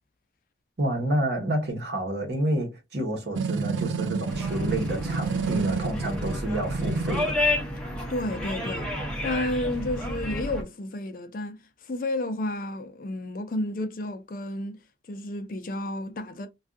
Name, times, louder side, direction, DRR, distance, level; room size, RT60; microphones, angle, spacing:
voice 1, 0.8-7.4, right 1 dB, 65° right, 1.1 m, -29 dB
sound 1, 3.3-7.3, right 4 dB, 90° right, 0.4 m, -29 dB
sound 2, 4.3-10.6, left 1 dB, 5° left, 0.7 m, -31 dB
voice 2, 8.1-8.9 9.2-14.8 15.1-16.5, left 1 dB, 50° left, 0.4 m, -31 dB
2.6 x 2.3 x 3.5 m
head